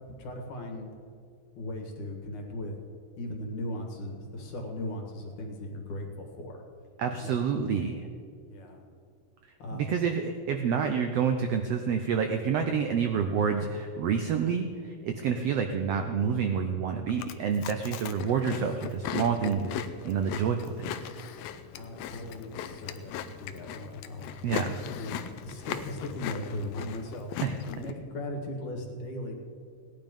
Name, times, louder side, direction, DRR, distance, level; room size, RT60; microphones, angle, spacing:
voice 1, 0.1-0.9 1.5-2.7 3.2-6.6 7.1-7.4 8.5-8.8 9.6-10.0 21.7-27.3 27.7-29.3, left 1 dB, 70° left, 2 dB, 3.2 m, -38 dB
voice 2, 7.0-8.1 9.7-20.9 24.4-24.8 27.4-27.5, right 6 dB, 75° right, 5 dB, 1.4 m, -28 dB
Chewing mastication, 17.1-27.9, left 9 dB, 85° left, 1.5 m, -38 dB
17.5 x 10.5 x 5.3 m, 2.3 s
omnidirectional pair, 3.7 m